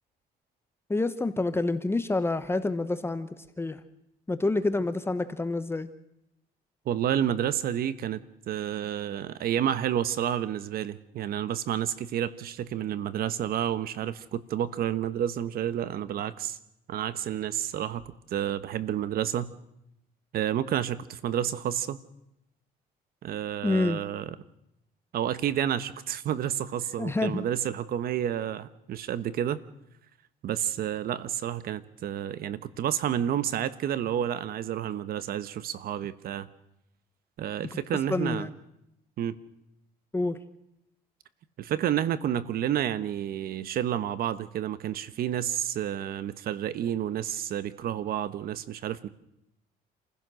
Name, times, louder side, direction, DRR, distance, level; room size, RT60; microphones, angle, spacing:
voice 1, 0.9-3.8 4.3-5.9 23.6-24.0 27.0-27.4 38.1-38.5 40.1-40.4, left 2 dB, 15° left, 11 dB, 1.0 m, -28 dB
voice 2, 6.8-8.2 8.5-16.6 16.9-18.0 18.3-19.5 20.3-22.0 23.2-24.3 25.1-29.6 30.4-36.5 37.4-38.5 39.2-39.3 41.6-49.1, right 10 dB, 65° right, 14 dB, 1.1 m, -30 dB
27.5 x 16.0 x 6.4 m, 0.83 s
cardioid pair, 110°, 17 cm